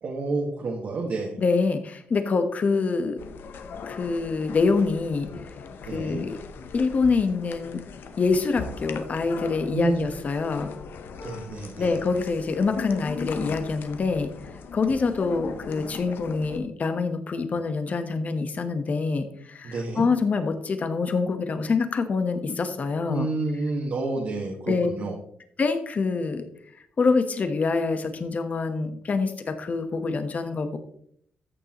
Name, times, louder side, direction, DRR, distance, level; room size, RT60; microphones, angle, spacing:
voice 1, 0.0-1.4 5.9-6.2 9.7-10.1 11.2-11.9 19.6-20.0 23.1-25.1, right 3 dB, 60° right, -1 dB, 1.8 m, -29 dB
voice 2, 1.4-3.2 3.9-5.3 5.9-6.4 6.7-7.8 8.2-10.7 11.8-14.3 14.7-23.3 24.7-24.9 25.6-26.4 27.0-30.8, left 4 dB, 45° left, 8 dB, 1.2 m, -25 dB
sound 1, 3.2-16.6, left 5 dB, 75° left, 0.8 m, -39 dB
14.0 x 6.7 x 3.1 m, 0.67 s
cardioid pair, 110°, 4 cm